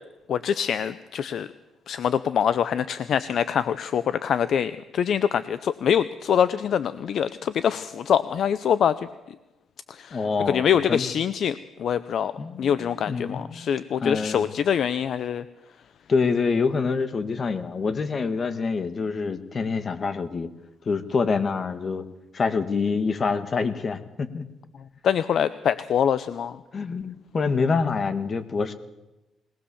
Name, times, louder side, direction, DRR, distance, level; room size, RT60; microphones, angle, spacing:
voice 1, 0.3-1.5 1.9-9.0 9.9-10.2 10.5-12.3 12.6-15.4 25.0-26.5, left 8 dB, 65° left, 14 dB, 0.7 m, -24 dB
voice 2, 10.1-11.1 12.4-13.7 14.0-14.5 16.1-20.5 20.8-22.0 22.3-24.5 26.7-28.7, left 4 dB, 40° left, 10 dB, 1.8 m, -26 dB
21.5 x 19.0 x 7.1 m, 1.0 s
cardioid pair, 90°, 0 cm